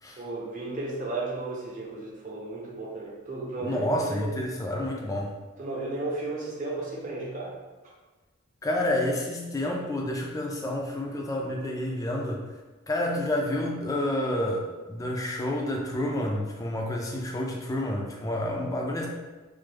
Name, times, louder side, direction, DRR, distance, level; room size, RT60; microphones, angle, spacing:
voice 1, 0.2-4.3 5.6-7.5, right 2 dB, 40° right, -4 dB, 0.7 m, -34 dB
voice 2, 3.6-5.3 8.6-12.4 12.9-19.1, left 1 dB, 15° left, -1 dB, 0.3 m, -29 dB
3.3 x 2.0 x 3.3 m, 1.2 s
head